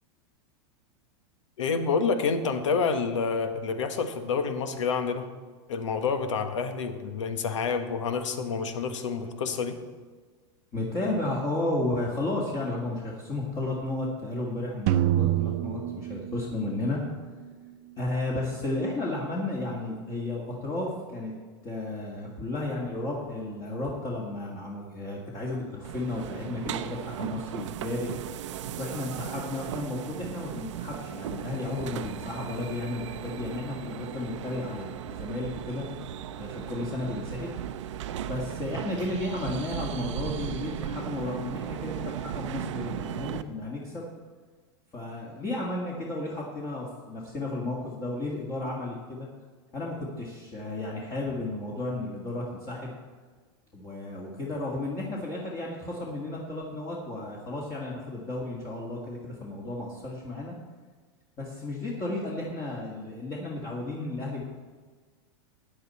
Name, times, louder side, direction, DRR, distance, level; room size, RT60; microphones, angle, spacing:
voice 1, 1.6-5.3 5.7-9.8, left 5 dB, 90° left, 8 dB, 1.4 m, -28 dB
voice 2, 10.7-17.0 18.0-21.3 21.6-28.1 28.8-35.9 36.4-37.5 38.3-44.1 44.9-49.3 49.7-52.9 53.7-60.5 61.4-64.4, left 2 dB, 25° left, -3 dB, 1.8 m, -33 dB
sound 1, 14.9-17.0, right 12 dB, 45° right, 0.6 m, -26 dB
sound 2, 25.8-43.4, right 10 dB, 80° right, 0.7 m, -36 dB
14.5 x 9.8 x 4.2 m, 1.4 s
supercardioid pair, 145°, 15 cm